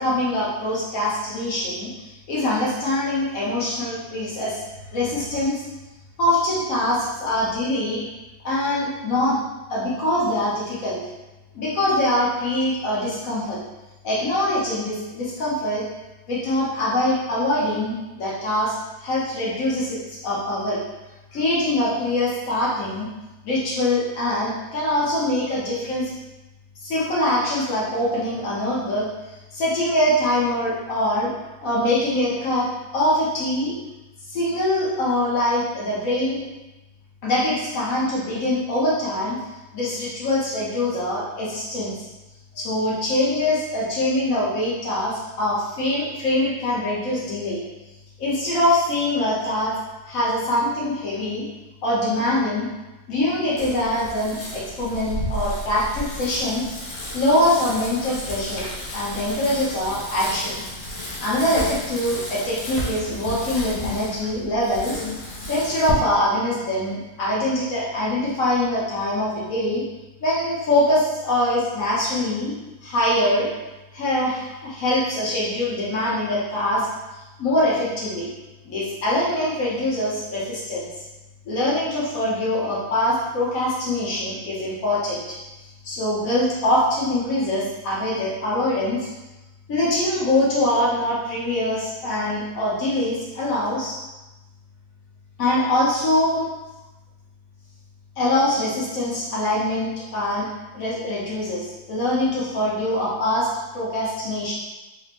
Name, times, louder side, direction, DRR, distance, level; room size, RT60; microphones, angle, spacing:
voice 1, 0.0-4.6 4.9-5.6 6.2-8.0 8.4-9.4 9.7-11.0 11.5-13.6 14.0-15.8 16.3-18.7 19.0-20.8 21.3-23.1 23.4-26.2 26.8-31.3 31.6-32.7 32.9-33.7 34.3-36.4 37.2-39.4 39.7-42.1 42.5-47.6 48.2-49.7 50.1-51.4 51.8-52.7 53.1-56.7 57.1-58.7 58.9-60.6 61.2-65.0 65.5-69.8 70.2-72.5 72.8-73.5 73.9-76.9 77.1-78.3 78.6-80.9 81.4-85.4 85.8-89.1 89.7-94.0 95.4-96.5 98.2-100.5 100.7-103.5 103.7-104.5, left 1 dB, 50° left, -7 dB, 1.1 m, -23 dB
Bicycle, 53.6-65.9, left 1 dB, 80° left, 1.7 m, -33 dB
4.3 x 2.3 x 3.4 m, 1.1 s
omnidirectional pair, 2.4 m